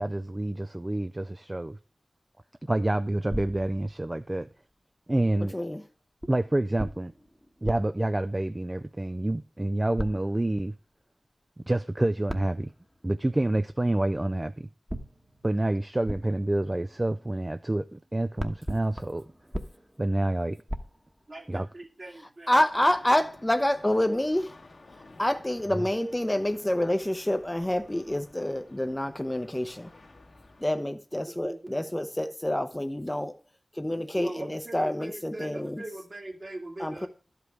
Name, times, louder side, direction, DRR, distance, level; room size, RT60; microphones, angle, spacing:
voice 1, 0.0-1.8 2.6-4.5 5.1-5.6 6.3-7.1 7.6-10.7 11.7-12.7 13.0-14.7 15.4-19.3 20.0-20.6 21.5-21.7 25.7-25.8, right 1 dB, 25° right, 0.4 m, -28 dB
sound 1, 4.3-4.5 6.2-9.1 10.0-10.8 12.3-13.4 14.9-17.8 18.0-21.7, equal, 5° right, 1.1 m, -40 dB
voice 2, 21.3-22.5 31.3-31.8 34.2-37.1, right 2 dB, 50° right, 2.1 m, -40 dB
voice 3, 22.1-24.5 25.2-29.9 30.6-33.3 33.8-35.8 36.8-37.1, left 1 dB, 15° left, 0.6 m, -27 dB
sound 2, 22.7-30.8, left 2 dB, 60° left, 1.1 m, -53 dB
11.5 x 5.2 x 4.7 m
cardioid pair, 45°, 0 cm